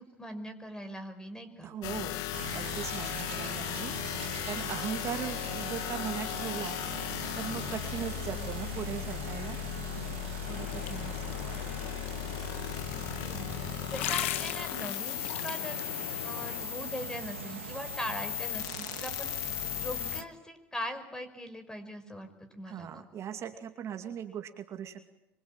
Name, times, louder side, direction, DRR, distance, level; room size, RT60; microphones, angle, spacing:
voice 1, 0.0-1.7 8.1-8.5 11.3-11.6 13.0-15.9 16.2-23.1, equal, 10° left, 9 dB, 5.5 m, -41 dB
voice 2, 1.6-2.2 2.5-3.9 4.5-6.8 7.3-9.6 10.5-11.3 22.7-25.1, right 8 dB, 45° right, 6 dB, 2.5 m, -39 dB
sound 1, 1.8-20.2, left 16 dB, 65° left, 1.0 m, -37 dB
sound 2, 2.3-20.3, right 12 dB, 90° right, 1.8 m, -43 dB
sound 3, 10.5-16.6, left 11 dB, 85° left, 1.9 m, -39 dB
25.5 x 23.5 x 9.0 m, 0.88 s
hypercardioid pair, 85°, 7 cm